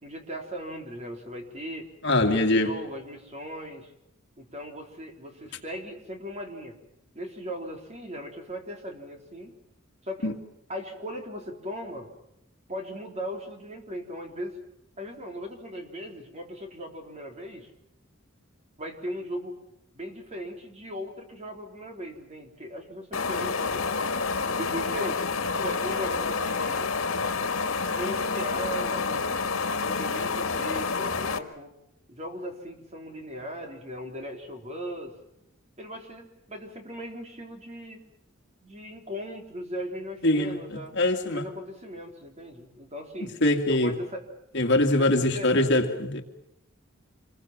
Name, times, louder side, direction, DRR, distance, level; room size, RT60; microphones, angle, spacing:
voice 1, 0.0-1.9 2.2-3.9 4.4-6.8 7.1-9.5 10.0-10.3 10.7-12.1 12.7-14.6 15.0-17.7 18.8-19.6 19.9-23.9 24.4-26.9 27.9-29.3 29.7-31.7 32.1-35.1 35.8-38.0 38.6-40.9 41.2-43.4 43.7-44.3 45.0-45.7, equal, 35° right, 3.8 m, -38 dB
voice 2, 2.0-2.7 10.2-10.3 40.2-41.4 43.4-43.9 44.5-46.2, left 1 dB, 60° left, 2.2 m, -23 dB
sound 1, 23.1-31.4, left 4 dB, 85° left, 1.8 m, -28 dB
27.0 x 21.5 x 7.5 m
head